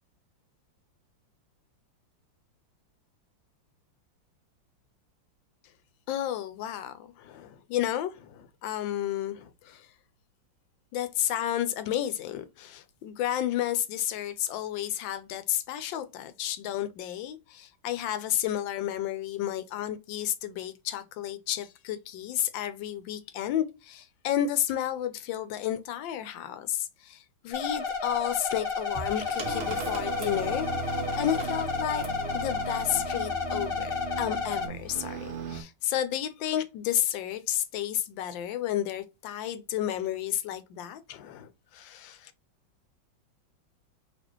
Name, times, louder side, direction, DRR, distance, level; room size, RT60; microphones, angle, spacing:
voice 1, 6.1-9.9 10.9-32.1 32.3-33.9 34.2-42.3, left 11 dB, 80° left, 1.3 m, -32 dB
sound 1, 27.5-34.7, left 5 dB, 45° left, 0.8 m, -31 dB
sound 2, 28.5-32.2 33.3-33.6, right 2 dB, 40° right, 1.3 m, -43 dB
sound 3, 29.4-35.6, right 4 dB, 85° right, 0.4 m, -37 dB
4.1 x 3.2 x 3.0 m
omnidirectional pair, 2.1 m